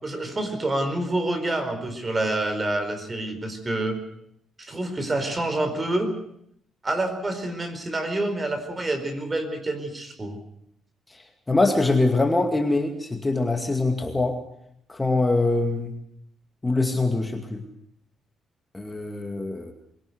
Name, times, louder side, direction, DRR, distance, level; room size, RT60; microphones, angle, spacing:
voice 1, 0.0-4.0 4.6-6.1 6.8-10.4, right 2 dB, 25° right, 8 dB, 4.5 m, -27 dB
voice 2, 11.5-14.4 14.9-15.9 16.6-17.6 18.7-19.7, left 2 dB, 15° left, 4 dB, 2.3 m, -23 dB
23.0 x 17.0 x 8.0 m, 0.72 s
cardioid pair, 90°, 0 cm